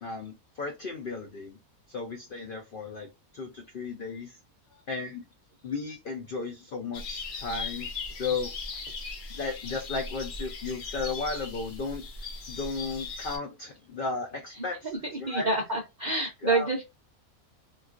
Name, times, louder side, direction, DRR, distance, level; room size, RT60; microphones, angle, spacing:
voice 1, 0.0-1.6 1.9-4.4 4.9-5.2 5.6-7.9 8.2-8.5 9.3-14.9 15.2-15.5 16.4-16.7, left 4 dB, 85° left, 0.4 m, -35 dB
sound 1, 6.9-13.4, left 4 dB, 55° left, 0.8 m, -38 dB
voice 2, 14.8-16.8, right 2 dB, 65° right, 0.4 m, -28 dB
3.8 x 2.4 x 2.4 m
omnidirectional pair, 1.6 m